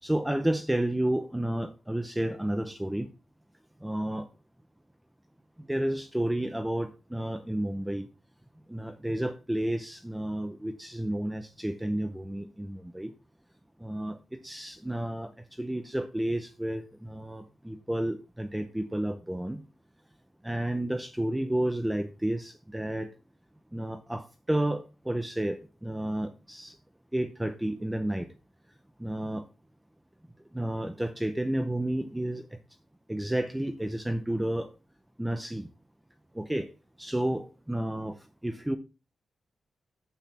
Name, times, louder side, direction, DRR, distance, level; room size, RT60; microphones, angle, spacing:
voice 1, 0.0-3.1 3.8-4.3 5.6-8.1 8.7-13.1 13.8-19.6 20.4-23.1 23.7-26.8 27.1-28.3 29.0-29.5 30.5-32.6 33.1-34.7 35.2-35.7 36.3-36.7 37.0-38.8, right 1 dB, 5° right, 0.6 m, -31 dB
9.1 x 8.2 x 4.2 m
wide cardioid pair, 170°, 0 cm